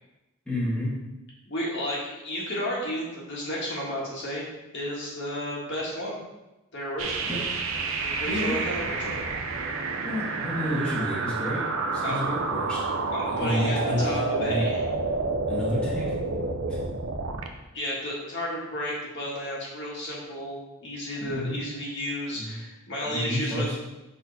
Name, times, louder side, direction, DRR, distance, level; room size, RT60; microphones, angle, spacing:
voice 1, 0.5-1.0 7.3-7.4 8.3-8.6 10.0-11.6 11.9-12.8 13.3-14.1 14.4-14.6 15.5-16.2 16.7-16.8 21.2-21.7 22.3-22.6 23.0-23.8, left 1 dB, 5° left, -8 dB, 1.5 m, -30 dB
voice 2, 1.5-4.4 4.7-6.2 6.7-7.3 7.9-9.3 12.0-12.2 13.1-14.8 17.7-23.8, equal, 55° left, -4 dB, 1.7 m, -32 dB
sound 1, 7.0-17.5, right 3 dB, 75° right, 0.7 m, -29 dB
6.0 x 4.2 x 4.1 m, 0.98 s
head